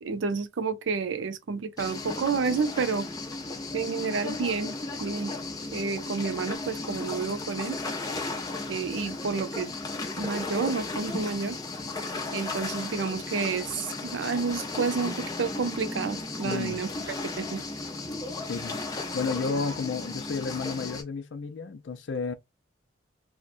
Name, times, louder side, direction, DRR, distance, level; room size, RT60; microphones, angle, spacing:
voice 1, 0.0-3.1 3.7-4.7 5.0-5.3 5.7-7.8 8.7-9.7 10.2-11.6 12.3-16.9 17.4-17.6, right 5 dB, 85° right, 0.5 m, -30 dB
sound 1, 1.8-21.0, left 3 dB, 20° left, 0.6 m, -35 dB
voice 2, 16.4-16.8 18.5-18.8 19.1-22.3, left 4 dB, 70° left, 0.5 m, -32 dB
2.8 x 2.1 x 2.4 m
head